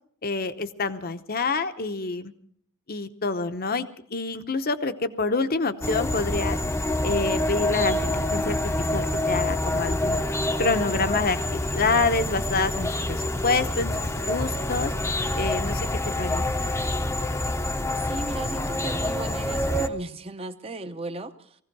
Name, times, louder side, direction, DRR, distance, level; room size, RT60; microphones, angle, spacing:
voice 1, 0.2-2.3 2.9-6.6 7.0-10.2 10.6-14.9 15.3-15.9 16.2-16.7, left 3 dB, 45° left, 10 dB, 0.9 m, -27 dB
sound 1, 5.8-19.9, left 1 dB, 15° left, 0.8 m, -27 dB
voice 2, 18.0-21.6, right 2 dB, 25° right, 9 dB, 0.8 m, -36 dB
19.5 x 16.0 x 4.6 m, 0.63 s
head